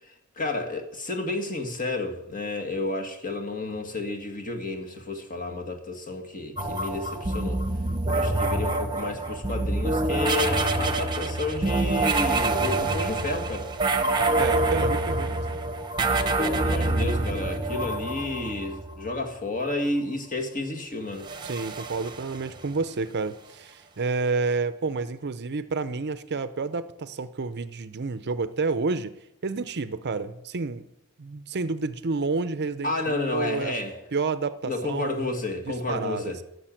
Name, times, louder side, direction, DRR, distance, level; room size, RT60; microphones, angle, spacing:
voice 1, 0.4-7.6 8.1-13.7 16.4-21.3 32.8-34.0 34.6-36.4, left 2 dB, 40° left, 4 dB, 1.9 m, -31 dB
sound 1, 6.6-19.1 21.2-22.8, right 2 dB, 20° right, 1.0 m, -26 dB
voice 2, 14.4-15.4 16.1-17.1 21.4-29.1 29.4-30.9 31.2-33.7 34.1-36.4, right 4 dB, 50° right, 13 dB, 0.6 m, -30 dB
14.5 x 6.7 x 9.1 m, 0.86 s
head